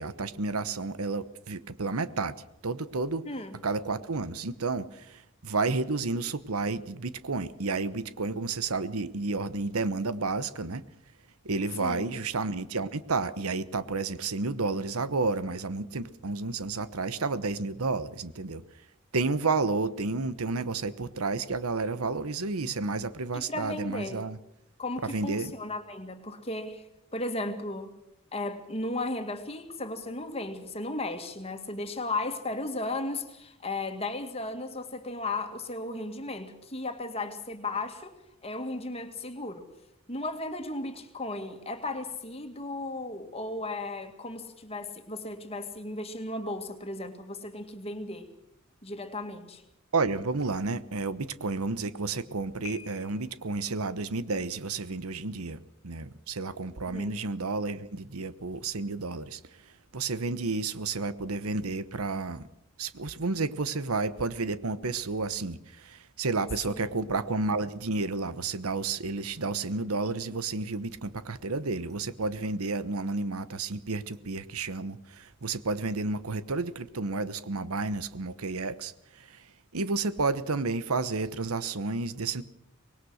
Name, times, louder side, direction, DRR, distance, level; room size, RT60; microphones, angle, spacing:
voice 1, 0.0-3.2 3.6-10.8 11.4-18.6 19.1-24.4 25.0-25.5 49.9-55.6 55.8-59.4 59.9-62.5 62.8-79.5 79.7-82.4, right 3 dB, 85° right, 14 dB, 1.1 m, -31 dB
voice 2, 3.3-3.6 11.8-12.1 23.3-24.3 24.8-26.8 27.1-27.9 28.3-38.1 38.4-39.7 40.1-48.3 48.8-49.6 56.9-57.1 66.7-67.1, left 2 dB, 25° left, 7 dB, 2.1 m, -35 dB
Piano, 52.6-53.6, left 9 dB, 85° left, 1.7 m, -46 dB
25.0 x 20.5 x 6.5 m, 0.80 s
head